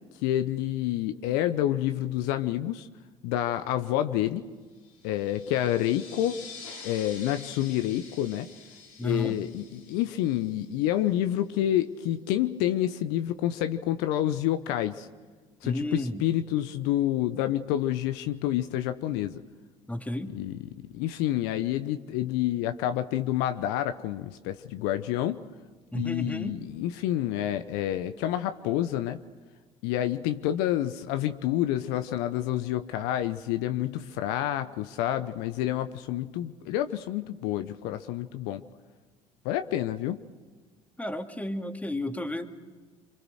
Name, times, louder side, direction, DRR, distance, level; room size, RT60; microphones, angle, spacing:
voice 1, 0.2-2.9 3.2-4.5 5.0-6.4 6.8-8.5 9.0-15.1 15.6-19.4 20.3-25.4 25.9-29.2 29.8-38.6 39.4-40.2, left 12 dB, 70° left, 10 dB, 0.9 m, -28 dB
sound 1, 4.8-11.1, left 5 dB, 85° left, 6.9 m, -47 dB
voice 2, 9.0-9.4 15.6-16.2 19.9-20.3 25.9-26.6 41.0-42.5, left 1 dB, 10° left, 5 dB, 2.4 m, -32 dB
27.0 x 25.5 x 6.5 m, 1.4 s
hypercardioid pair, 55°, 17 cm